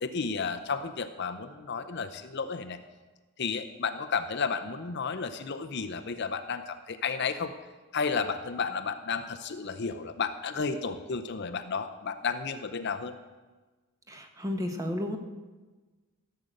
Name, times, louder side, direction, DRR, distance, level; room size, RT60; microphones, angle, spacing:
voice 1, 0.0-2.8 3.4-7.5 7.9-13.1, left 5 dB, 50° left, 9 dB, 0.6 m, -32 dB
voice 2, 14.1-15.2, left 1 dB, 15° right, 4 dB, 1.2 m, -32 dB
15.0 x 6.7 x 7.8 m, 1.3 s
head